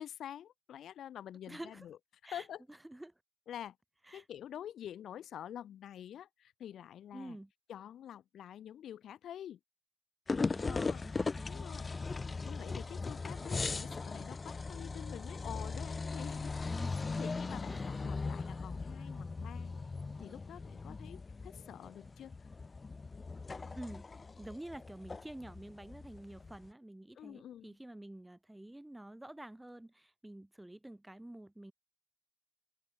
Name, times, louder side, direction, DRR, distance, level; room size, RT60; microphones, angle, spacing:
voice 1, 0.0-2.0 2.3-2.6 3.5-3.8 4.1-7.4 7.7-9.6 10.6-11.0 11.5-16.7 17.0-19.7 20.2-22.4 27.1-27.8, left 10 dB, 75° left, 1.5 m, -47 dB
voice 2, 1.5-1.9 2.2-2.5 2.8-3.1 4.1-4.2 7.1-7.5 10.5-11.7 16.6-17.3 17.7-17.9 23.7-24.1 24.4-31.7, right 1 dB, 10° right, 4.1 m, -48 dB
sound 1, 10.3-26.7, left 4 dB, 40° left, 2.1 m, -39 dB
open air
supercardioid pair, 50°, 0 cm